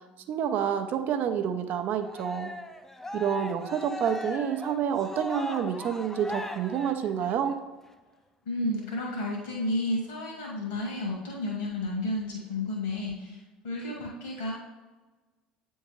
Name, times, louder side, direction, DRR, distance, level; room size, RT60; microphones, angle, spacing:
voice 1, 0.3-2.5 3.1-7.6, right 8 dB, 45° right, 7 dB, 0.6 m, -28 dB
Cheering, 2.0-7.5, left 2 dB, 10° left, 0.5 m, -38 dB
voice 2, 8.4-13.4 13.6-14.5, left 1 dB, 70° left, -3 dB, 1.6 m, -31 dB
8.7 x 3.6 x 3.1 m, 1.2 s
figure-of-eight pair, 65°, 4 cm